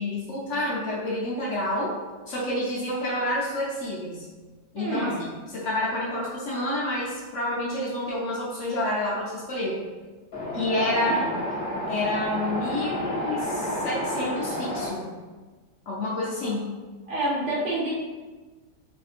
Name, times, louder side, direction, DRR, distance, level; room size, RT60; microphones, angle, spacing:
voice 1, 0.0-1.9 2.3-4.3 4.7-5.1 5.5-9.8 10.5-11.2 11.5-11.6 11.9-15.1 15.9-16.7, left 1 dB, 70° left, -5 dB, 0.7 m, -28 dB
voice 2, 4.8-5.2 10.9-11.3 17.1-17.9, right 1 dB, 75° right, -7 dB, 1.3 m, -28 dB
Wind, 10.3-14.9, left 1 dB, 50° left, 1.0 m, -30 dB
3.5 x 2.5 x 2.4 m, 1.3 s
omnidirectional pair, 1.8 m